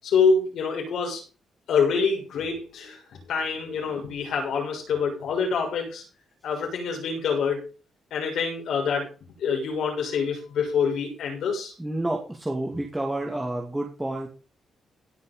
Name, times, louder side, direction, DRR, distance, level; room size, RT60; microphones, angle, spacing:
voice 1, 0.0-1.2 1.7-3.0 3.3-6.0 6.4-7.6 8.1-9.1 9.4-11.7, left 5 dB, 75° left, 1 dB, 6.8 m, -26 dB
voice 2, 11.8-14.3, right 1 dB, 10° right, 0 dB, 2.4 m, -29 dB
17.0 x 6.3 x 5.5 m, 0.35 s
cardioid pair, 135°, 0 cm